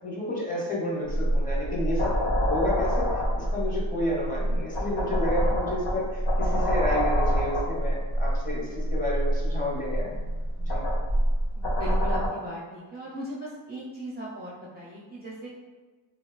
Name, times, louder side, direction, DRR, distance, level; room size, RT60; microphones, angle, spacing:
voice 1, 0.0-2.1 2.5-3.1 3.3-10.8, left 1 dB, 15° left, -5 dB, 0.9 m, -31 dB
sound 1, 1.1-12.3, equal, 70° left, 0.7 m, -26 dB
voice 2, 11.5-15.5, equal, 20° right, -7 dB, 0.5 m, -38 dB
2.8 x 2.3 x 2.3 m, 1.3 s
cardioid pair, 75°, 46 cm